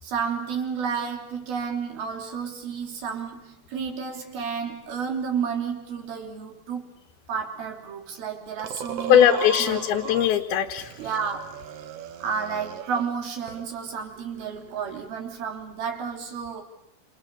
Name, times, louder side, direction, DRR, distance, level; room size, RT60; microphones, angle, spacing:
voice 1, 0.0-6.9 7.3-9.9 11.0-11.6 12.2-16.6, right 6 dB, 60° right, 2 dB, 4.9 m, -31 dB
sound 1, 8.6-10.4 10.8-13.2 13.5-15.1, right 7 dB, 85° right, 1.3 m, -38 dB
voice 2, 9.1-10.9, left 9 dB, 70° left, 3 dB, 3.0 m, -20 dB
29.5 x 28.5 x 6.9 m, 0.80 s
omnidirectional pair, 5.0 m